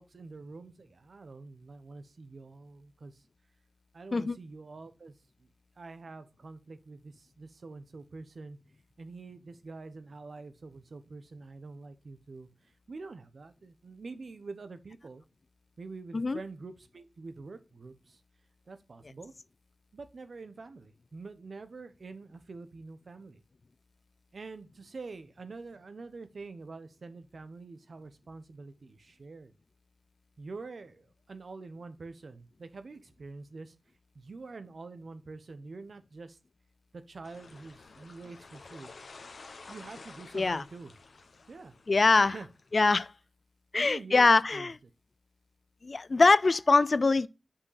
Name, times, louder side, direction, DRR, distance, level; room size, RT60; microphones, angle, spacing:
voice 1, 0.0-3.1 3.9-5.1 5.8-8.6 9.0-12.5 12.9-15.2 15.8-18.2 18.7-19.3 19.9-23.4 24.3-29.5 30.4-33.7 34.1-36.4 36.9-38.9 39.7-40.9 41.5-41.7 42.3-42.5 43.7-44.3 44.5-44.7, right 3 dB, 70° right, 0.8 m, -46 dB
sound 1, 37.2-43.0, left 3 dB, 80° left, 1.0 m, -51 dB
voice 2, 40.3-40.6 41.9-42.4 42.7-43.1 43.7-44.8 45.8-47.3, left 3 dB, 55° left, 0.3 m, -23 dB
5.7 x 5.6 x 4.0 m
cardioid pair, 55°, 0 cm